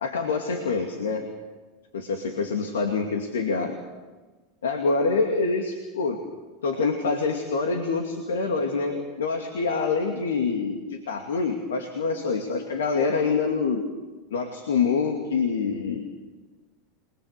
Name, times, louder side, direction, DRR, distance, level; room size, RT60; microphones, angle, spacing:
voice 1, 0.0-1.2 1.9-3.7 4.6-6.2 6.6-13.8 14.3-16.2, left 4 dB, 85° left, 4 dB, 2.4 m, -26 dB
29.0 x 21.0 x 6.8 m, 1.3 s
hypercardioid pair, 95°, 0 cm